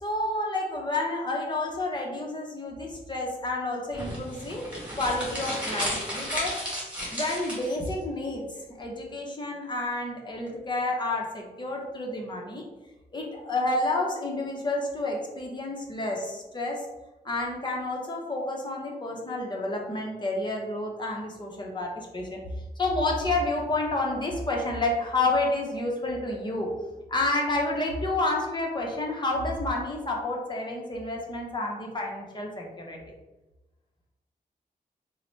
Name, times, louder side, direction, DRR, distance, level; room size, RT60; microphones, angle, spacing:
voice 1, 0.0-4.7 5.0-6.6 7.1-12.6 13.1-16.9 17.2-22.4 22.8-26.7 27.1-33.0, left 2 dB, 30° left, -1 dB, 0.7 m, -30 dB
sound 1, 3.9-7.9, equal, 5° right, 1.5 m, -33 dB
3.9 x 2.0 x 3.1 m, 1.1 s
wide cardioid pair, 105°, 16 cm